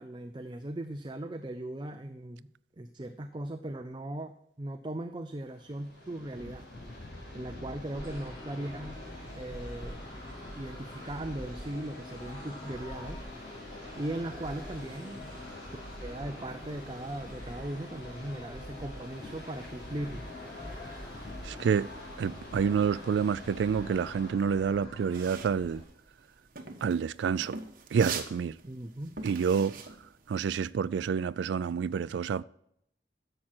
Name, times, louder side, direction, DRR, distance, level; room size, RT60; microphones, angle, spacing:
voice 1, 0.0-2.5 2.8-6.7 7.3-9.0 9.3-10.0 10.5-13.2 13.9-15.3 16.0-20.2 28.6-29.1, right 1 dB, 25° right, 0.5 m, -38 dB
sound 1, 5.4-24.3, left 1 dB, 75° left, 4.7 m, -47 dB
sound 2, 7.9-25.8, left 1 dB, 30° left, 4.0 m, -45 dB
voice 2, 21.4-21.9 22.2-25.8 26.8-27.6 27.9-28.6 29.2-29.7 30.3-32.4, right 6 dB, 90° right, 0.3 m, -28 dB
sound 3, 25.1-30.7, right 5 dB, 50° right, 1.2 m, -42 dB
11.0 x 7.4 x 4.4 m
head